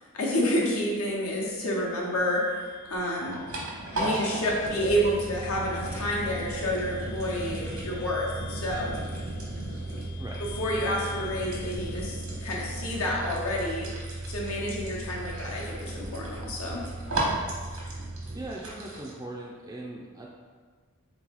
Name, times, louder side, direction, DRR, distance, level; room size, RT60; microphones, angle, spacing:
voice 1, 0.1-2.4 2.9-3.4 3.9-8.9 10.6-13.9 14.3-16.8, equal, 85° left, -3 dB, 1.0 m, -29 dB
sound 1, 0.7-13.7, left 11 dB, 55° left, 0.6 m, -52 dB
sound 2, 2.8-19.1, right 1 dB, 90° right, 1.2 m, -37 dB
sound 3, 4.8-18.4, right 2 dB, 70° right, 0.6 m, -38 dB
voice 2, 18.3-20.3, right 2 dB, 15° right, -3 dB, 0.3 m, -39 dB
3.6 x 3.0 x 3.8 m, 1.5 s
head